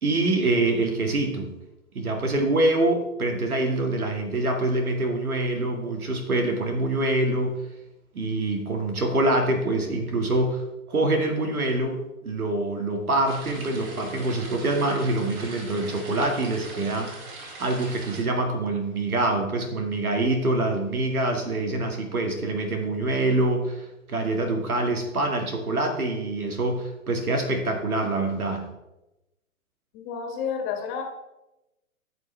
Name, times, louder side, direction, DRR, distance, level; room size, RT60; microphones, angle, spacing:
voice 1, 0.0-1.5 1.9-7.6 8.1-10.6 10.9-17.1 17.6-28.7, right 2 dB, 90° right, 3 dB, 2.3 m, -25 dB
sound 1, 13.2-18.2, right 2 dB, 35° right, 2.1 m, -41 dB
voice 2, 29.9-31.0, left 7 dB, 30° left, 3 dB, 1.7 m, -30 dB
14.5 x 5.4 x 3.4 m, 0.95 s
hypercardioid pair, 130°, 42 cm